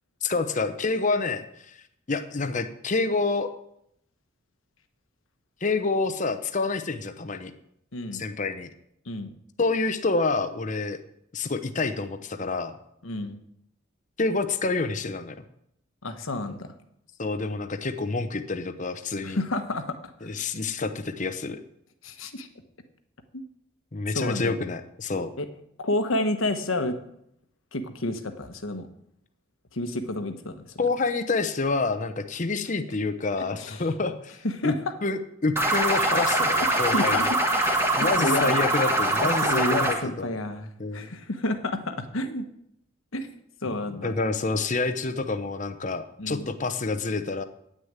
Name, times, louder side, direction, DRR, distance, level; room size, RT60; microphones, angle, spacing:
voice 1, 0.2-1.8 2.1-3.5 5.6-7.5 8.1-8.7 9.6-11.0 11.3-12.7 14.2-15.4 17.2-19.4 20.2-21.6 23.9-25.3 30.8-34.4 34.6-34.7 35.0-37.2 38.0-40.4 40.8-41.1 44.0-47.4, left 3 dB, 35° left, 8 dB, 0.8 m, -28 dB
voice 2, 7.9-8.2 9.0-9.4 13.0-13.4 16.0-16.7 19.2-19.9 22.0-22.5 23.3-23.4 24.1-24.6 25.4-25.5 25.8-27.0 27.7-28.9 29.7-30.7 33.6-33.8 34.4-34.7 36.1-36.3 36.6-38.5 39.2-42.5 43.1-43.3 43.6-44.2 46.2-46.5, left 1 dB, 75° left, 7 dB, 1.2 m, -30 dB
sound 1, 35.6-40.0, right 1 dB, 10° right, 1.6 m, -23 dB
9.7 x 6.6 x 8.9 m, 0.75 s
head